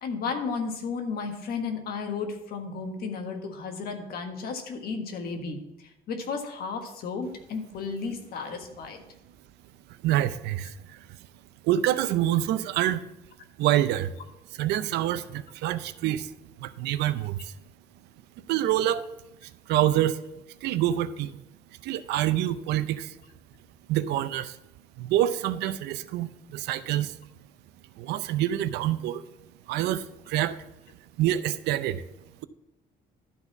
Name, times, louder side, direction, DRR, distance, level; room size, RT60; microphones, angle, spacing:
voice 1, 0.0-9.0, left 5 dB, 65° left, 5 dB, 1.5 m, -33 dB
voice 2, 10.0-11.2 11.6-13.0 13.6-14.1 14.5-16.3 16.6-17.5 18.4-19.0 19.4-20.2 20.6-21.4 21.8-23.2 23.9-24.6 25.0-27.2 28.0-29.2 29.7-30.6 31.2-32.0, right 13 dB, 85° right, 14 dB, 0.5 m, -26 dB
12.0 x 4.1 x 5.9 m, 0.89 s
cardioid pair, 110°, 17 cm